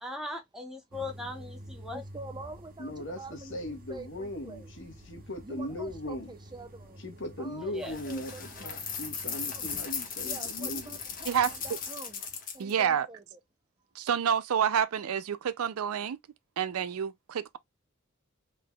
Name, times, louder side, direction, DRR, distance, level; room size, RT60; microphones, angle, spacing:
voice 1, 0.0-2.0 7.7-7.9, left 2 dB, 5° right, 1.1 m, -39 dB
sound 1, 0.9-11.7, equal, 45° right, 1.2 m, -49 dB
voice 2, 1.9-4.7 5.4-7.0 7.4-8.8 9.5-9.9 10.2-12.2 12.5-13.4, right 3 dB, 20° right, 0.6 m, -46 dB
voice 3, 2.8-6.3 7.0-10.9, left 1 dB, 60° left, 1.2 m, -39 dB
sound 2, 7.8-12.7, left 6 dB, 40° left, 1.1 m, -37 dB
voice 4, 12.6-13.1 14.0-16.2 16.6-17.6, right 8 dB, 80° right, 0.4 m, -28 dB
3.8 x 3.4 x 2.2 m
head